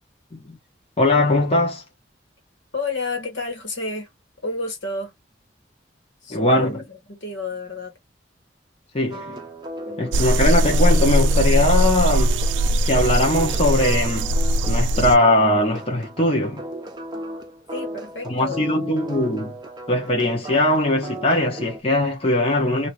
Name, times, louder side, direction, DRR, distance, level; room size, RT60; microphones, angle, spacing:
voice 1, 1.0-1.8 6.3-6.8 8.9-9.4 10.0-12.4 12.8-14.4 14.7-16.7 18.2-19.5 19.9-22.9, left 1 dB, 30° left, 1.1 m, -20 dB
voice 2, 2.7-4.1 4.4-5.1 6.2-6.8 7.1-7.9 9.9-10.0 17.7-18.7, left 3 dB, 85° left, 1.6 m, -30 dB
sound 1, 9.1-21.8, right 1 dB, 25° right, 0.7 m, -36 dB
sound 2, 10.1-15.2, right 1 dB, 90° right, 0.4 m, -20 dB
2.9 x 2.8 x 3.0 m
head